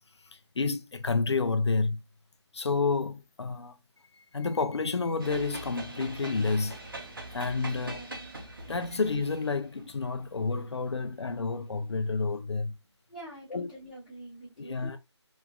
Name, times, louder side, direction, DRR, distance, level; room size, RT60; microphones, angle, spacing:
voice 1, 0.6-2.0 2.5-3.7 4.3-6.8 7.3-8.0 8.7-12.8 13.5-13.7 14.6-15.0, left 4 dB, 65° left, 0.4 m, -29 dB
sound 1, 5.2-11.5, right 2 dB, 50° right, 0.7 m, -42 dB
voice 2, 7.6-8.3 13.1-15.0, right 1 dB, ahead, 0.5 m, -46 dB
3.0 x 2.3 x 2.2 m
figure-of-eight pair, 175°, 15 cm